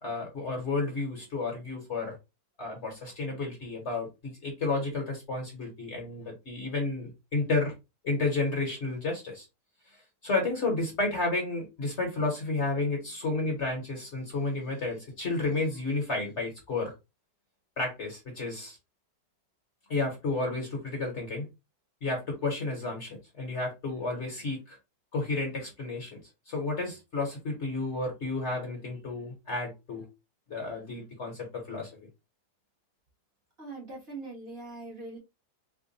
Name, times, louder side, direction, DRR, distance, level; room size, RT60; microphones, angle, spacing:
voice 1, 0.0-2.2 2.6-7.7 8.0-9.5 9.9-16.9 17.8-18.8 19.9-21.5 22.0-24.8 25.1-26.2 26.5-30.1 30.5-31.9, left 3 dB, 45° left, 1.1 m, -31 dB
voice 2, 33.6-35.2, right 3 dB, 40° right, 1.3 m, -41 dB
3.5 x 2.2 x 3.9 m
omnidirectional pair, 1.9 m